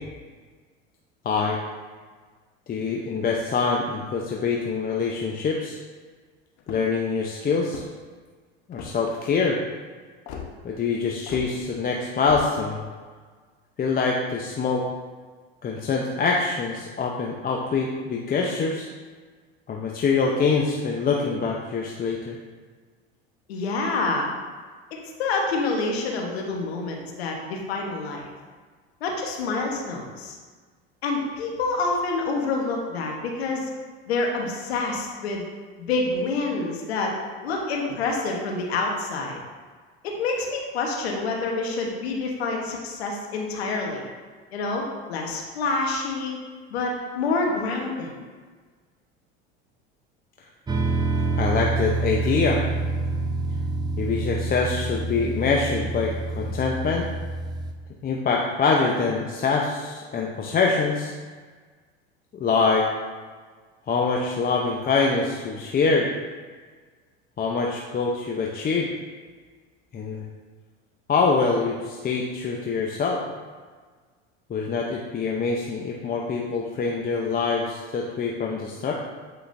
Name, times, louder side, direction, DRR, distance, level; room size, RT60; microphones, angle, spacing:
voice 1, 1.2-1.6 2.7-5.8 6.7-7.8 8.7-9.6 10.6-12.8 13.8-14.8 15.6-18.9 19.7-22.4 51.4-52.6 54.0-57.1 58.0-61.1 62.3-62.9 63.9-66.1 67.4-68.9 69.9-70.2 71.1-73.2 74.5-78.9, left 4 dB, 30° left, -1 dB, 0.7 m, -24 dB
sound 1, 6.6-7.0 7.6-8.1 8.7-9.1 10.3-10.5 11.3-11.5 12.2-12.5, left 6 dB, 60° left, 1.1 m, -37 dB
voice 2, 23.5-24.3 25.2-28.2 29.0-30.4 31.0-33.7 34.1-35.4 35.8-37.1 37.4-39.4 40.0-44.0 44.5-46.4 46.7-48.1, left 3 dB, 90° left, 0 dB, 1.1 m, -27 dB
sound 2, 50.7-57.7, right 3 dB, 15° right, 0.6 m, -27 dB
8.1 x 4.9 x 2.6 m, 1.5 s
hypercardioid pair, 90°, 30 cm